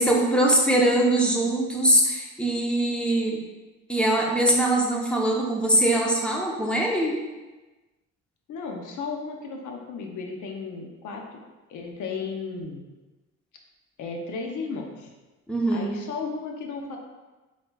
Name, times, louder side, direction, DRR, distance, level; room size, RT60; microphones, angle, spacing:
voice 1, 0.0-3.4 3.9-7.2 15.5-16.0, right 1 dB, 5° left, -2 dB, 0.9 m, -22 dB
voice 2, 8.5-11.4 11.7-12.8 14.0-15.1 15.7-17.0, left 4 dB, 80° left, 2 dB, 0.8 m, -34 dB
4.6 x 4.0 x 2.4 m, 1.2 s
cardioid pair, 90°, 30 cm